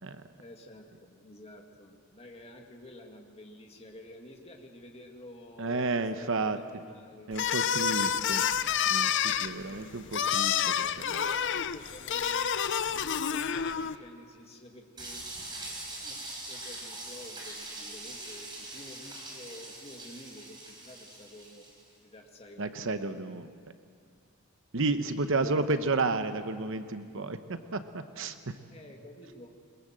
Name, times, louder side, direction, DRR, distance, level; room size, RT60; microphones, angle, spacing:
voice 1, 0.4-5.9 6.2-7.3 7.7-8.2 9.5-10.2 10.8-12.5 12.9-15.3 15.7-21.7 22.0-23.2 25.3-26.2 28.7-29.5, left 1 dB, 25° left, 1 dB, 2.2 m, -50 dB
voice 2, 5.6-6.6 7.3-8.4 8.9-10.8 11.1-11.2 22.6-23.5 24.7-28.6, right 3 dB, 60° right, 9 dB, 0.9 m, -32 dB
sound 1, 7.3-14.0, left 8 dB, 55° left, 0.6 m, -29 dB
sound 2, 15.0-21.8, right 2 dB, 20° right, 4.4 m, -42 dB
21.5 x 21.5 x 7.6 m, 2.1 s
head